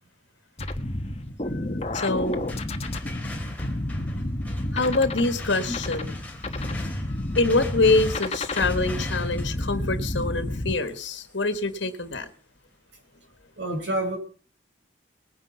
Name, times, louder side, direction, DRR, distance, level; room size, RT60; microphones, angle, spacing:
sound 1, 0.6-10.8, left 1 dB, 35° left, 1.2 m, -30 dB
voice 1, 1.9-2.4 4.7-6.2 7.3-12.3, left 3 dB, 85° left, 10 dB, 1.5 m, -25 dB
sound 2, 2.2-12.0, left 3 dB, 10° left, 2.7 m, -43 dB
voice 2, 13.6-14.2, right 1 dB, 90° right, 4 dB, 4.7 m, -28 dB
20.0 x 9.9 x 5.6 m, 0.39 s
head